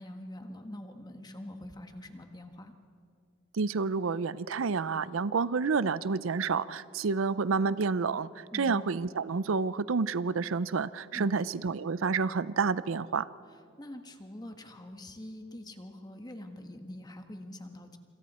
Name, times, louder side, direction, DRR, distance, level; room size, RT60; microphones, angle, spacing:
voice 1, 0.0-2.7 8.5-8.8 11.1-11.3 13.8-18.0, left 1 dB, 20° left, 6 dB, 1.5 m, -44 dB
voice 2, 3.5-13.3, right 5 dB, 75° right, 17 dB, 0.5 m, -29 dB
27.5 x 26.5 x 4.3 m, 2.3 s
head